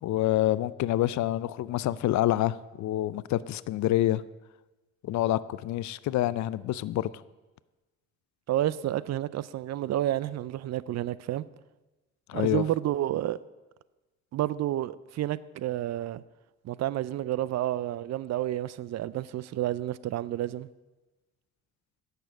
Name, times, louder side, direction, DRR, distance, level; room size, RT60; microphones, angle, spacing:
voice 1, 0.0-4.2 5.0-7.1 12.3-12.6, left 14 dB, 70° left, 19 dB, 0.5 m, -27 dB
voice 2, 8.5-11.4 12.3-13.4 14.3-16.2 16.6-20.7, right 13 dB, 60° right, 19 dB, 0.5 m, -30 dB
10.0 x 6.9 x 7.0 m, 1.1 s
cardioid pair, 90°, 30 cm